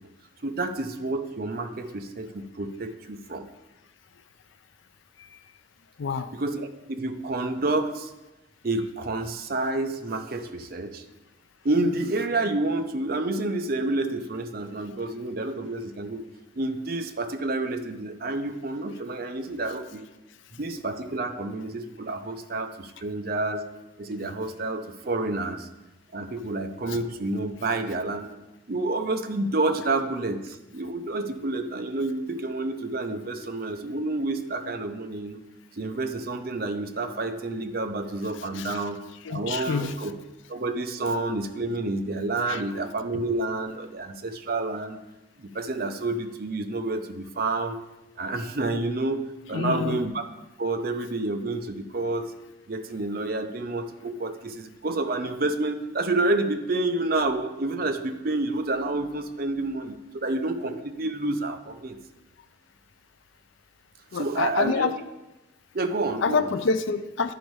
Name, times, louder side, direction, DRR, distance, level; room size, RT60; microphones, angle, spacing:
voice 1, 0.4-3.5 6.3-8.1 8.6-11.0 11.6-16.2 16.6-20.1 20.6-23.6 24.0-25.7 26.1-28.3 28.7-35.4 35.8-39.0 39.3-40.1 40.5-45.0 45.4-47.8 48.2-49.2 49.5-50.2 50.6-52.3 52.7-62.0 64.1-64.9 65.7-66.5, right 2 dB, 45° right, 7 dB, 0.6 m, -29 dB
voice 2, 6.0-6.3 26.9-27.0 38.4-38.8 39.2-40.0 42.5-42.6 49.5-50.0 64.1-64.9 66.2-67.3, left 5 dB, 70° left, 12 dB, 0.4 m, -27 dB
10.0 x 5.3 x 4.7 m, 1.0 s
head